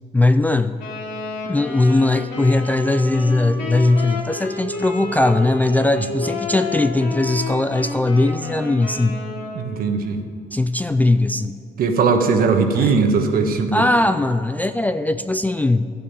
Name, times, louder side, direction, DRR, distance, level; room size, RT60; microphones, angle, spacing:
voice 1, 0.1-0.8 1.4-9.2 10.5-11.6 12.8-12.9 13.7-15.9, left 2 dB, 10° left, 10 dB, 0.3 m, -19 dB
Wind instrument woodwind instrument, 0.8-9.8, left 3 dB, 75° left, 2.8 m, -31 dB
voice 2, 9.5-10.2 11.8-13.8, right 4 dB, 60° right, 5 dB, 1.3 m, -19 dB
12.0 x 6.9 x 9.0 m, 2.3 s
cardioid pair, 110°, 17 cm